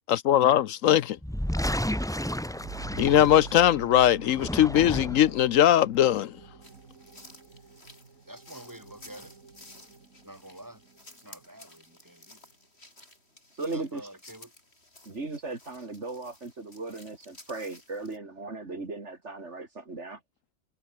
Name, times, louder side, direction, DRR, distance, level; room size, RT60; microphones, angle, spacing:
voice 1, 0.1-1.2 3.0-6.4, left 11 dB, 75° left, 1.0 m, -21 dB
sound 1, 1.2-3.8 4.2-5.4, equal, 5° left, 1.0 m, -32 dB
sound 2, 2.3-11.7, right 4 dB, 85° right, 2.7 m, -47 dB
sound 3, 6.6-18.2, left 2 dB, 50° left, 6.0 m, -54 dB
voice 2, 8.3-9.4 10.2-10.8 11.2-12.5 13.7-14.5, right 1 dB, 15° right, 4.3 m, -47 dB
voice 3, 13.6-14.0 15.0-20.2, right 3 dB, 55° right, 3.3 m, -37 dB
omnidirectional pair, 1.4 m